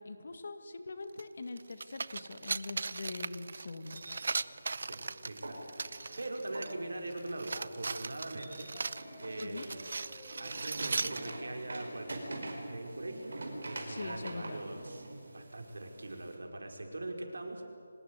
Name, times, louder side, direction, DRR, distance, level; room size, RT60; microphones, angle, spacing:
voice 1, 0.0-4.0 9.4-9.7 13.9-14.6, left 3 dB, 45° left, 9 dB, 2.0 m, -43 dB
sound 1, 1.2-1.3 1.6-6.8 7.1-11.3, right 4 dB, 45° right, 0.6 m, -38 dB
sound 2, 3.9-16.3, right 2 dB, 60° right, 5.1 m, -46 dB
voice 2, 4.8-8.7 9.2-13.3 13.6-15.0 15.3-17.6, right 2 dB, 85° right, 3 dB, 4.9 m, -42 dB
sound 3, 4.9-7.7 8.7-11.7, left 3 dB, 10° left, 1.5 m, -59 dB
25.0 x 19.0 x 9.7 m, 2.5 s
figure-of-eight pair, 175°, 0 cm